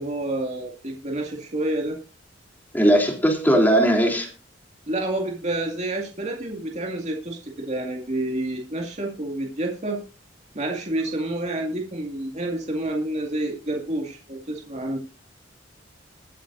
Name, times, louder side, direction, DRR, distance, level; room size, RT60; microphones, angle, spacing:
voice 1, 0.0-2.0 4.9-10.0 10.5-15.0, right 1 dB, 40° right, 1 dB, 2.3 m, -29 dB
voice 2, 2.7-4.3, equal, 10° left, 1 dB, 3.3 m, -18 dB
20.5 x 9.1 x 2.7 m, 0.31 s
head